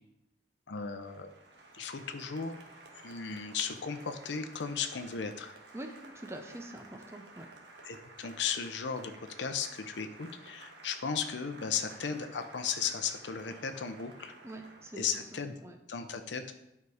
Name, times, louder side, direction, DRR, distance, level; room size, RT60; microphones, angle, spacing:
voice 1, 0.7-1.3 1.7-2.6 3.0-5.5 7.8-14.3 15.0-15.5 15.9-16.5, left 6 dB, 85° left, 7 dB, 0.6 m, -36 dB
Applause, 0.8-15.6, right 2 dB, 75° right, 1.4 m, -53 dB
voice 2, 5.7-7.5 14.4-15.1 15.6-15.8, right 1 dB, 15° right, 5 dB, 0.6 m, -44 dB
9.6 x 4.8 x 4.8 m, 0.85 s
head